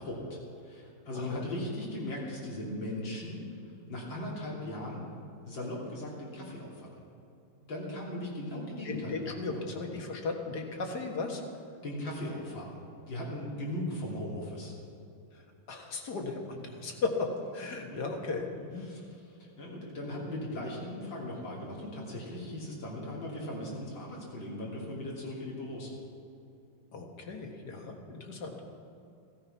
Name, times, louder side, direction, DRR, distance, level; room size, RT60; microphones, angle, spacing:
voice 1, 0.0-3.4 3.9-5.1 5.4-6.9 7.5-9.6 11.8-12.8 13.1-14.7 17.9-18.0 18.8-19.0 19.4-25.9, left 1 dB, 90° left, -4 dB, 3.9 m, -38 dB
voice 2, 1.1-1.4 8.9-11.4 15.3-18.9 26.9-28.6, left 3 dB, 60° left, 3 dB, 2.2 m, -36 dB
15.5 x 13.5 x 5.7 m, 2.6 s
omnidirectional pair, 2.0 m